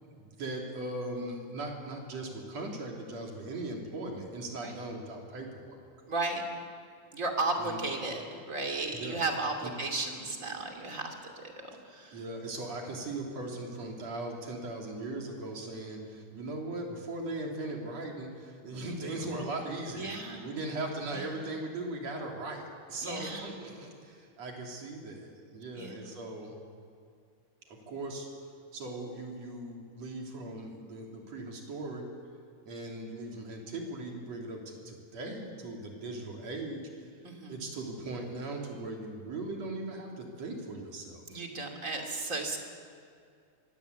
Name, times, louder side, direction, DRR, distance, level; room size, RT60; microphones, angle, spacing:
voice 1, 0.2-5.8 7.6-7.8 8.9-9.2 9.6-9.7 12.1-26.6 27.7-28.3 28.7-32.1 32.6-36.8 37.5-41.4, right 2 dB, 55° right, 0 dB, 4.2 m, -39 dB
voice 2, 6.1-6.4 7.1-11.5 11.9-12.2 20.0-20.5 23.0-23.5 25.8-26.1 37.2-37.6 41.3-42.6, right 3 dB, 25° right, 2 dB, 2.8 m, -34 dB
23.5 x 19.0 x 8.4 m, 2.3 s
omnidirectional pair, 3.6 m